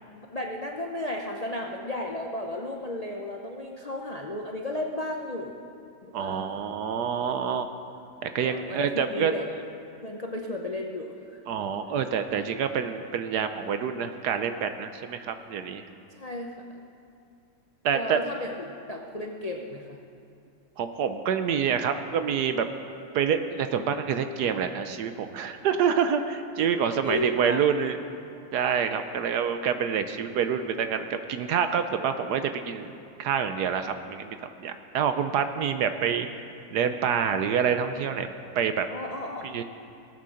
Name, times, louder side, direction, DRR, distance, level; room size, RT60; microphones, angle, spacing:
voice 1, 0.3-5.6 6.0-6.6 8.4-9.5 10.0-11.4 16.2-16.5 17.9-20.0 27.0-27.6 38.9-39.6, left 1 dB, 85° left, 0 dB, 0.3 m, -34 dB
voice 2, 6.1-7.7 8.2-9.3 11.5-15.8 17.8-18.2 20.8-22.7 23.1-28.0 28.5-32.9 33.2-36.3 36.7-38.9 39.4-39.6, right 7 dB, 70° right, 8 dB, 1.1 m, -27 dB
18.0 x 8.4 x 6.4 m, 2.5 s
omnidirectional pair, 2.1 m